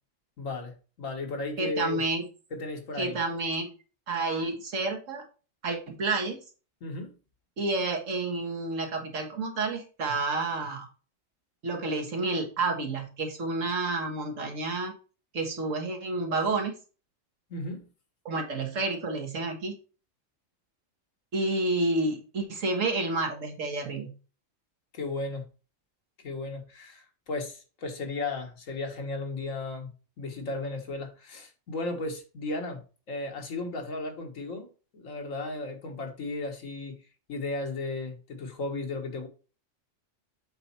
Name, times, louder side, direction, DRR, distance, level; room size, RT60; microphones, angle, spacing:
voice 1, 0.4-2.0 2.5-3.2 6.8-7.1 17.5-17.8 24.9-25.5 26.2-29.9 30.2-37.0 37.3-39.3, left 3 dB, 85° left, 1.8 m, -35 dB
voice 2, 1.6-2.2 3.0-3.7 4.1-5.2 5.6-6.4 7.6-10.9 11.6-14.9 15.3-16.7 18.3-19.8 21.3-24.1, right 3 dB, 75° right, 1.9 m, -30 dB
7.9 x 4.1 x 4.4 m
omnidirectional pair, 1.3 m